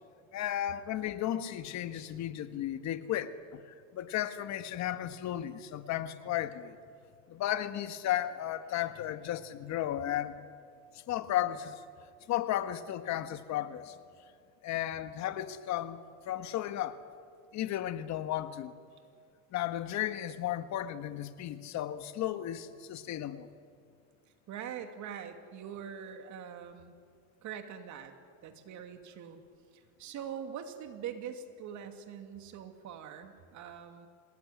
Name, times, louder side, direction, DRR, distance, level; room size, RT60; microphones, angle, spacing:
voice 1, 0.3-3.6 3.9-6.8 7.3-10.4 10.9-11.8 12.3-14.0 14.6-16.0 16.3-17.0 17.5-18.8 19.5-23.5, left 12 dB, 45° left, 10 dB, 1.6 m, -34 dB
voice 2, 24.5-26.9 27.4-28.1 28.4-29.4 29.7-34.1, right 8 dB, 45° right, 6 dB, 2.6 m, -43 dB
27.0 x 19.0 x 9.9 m, 2.2 s
supercardioid pair, 125°, 39 cm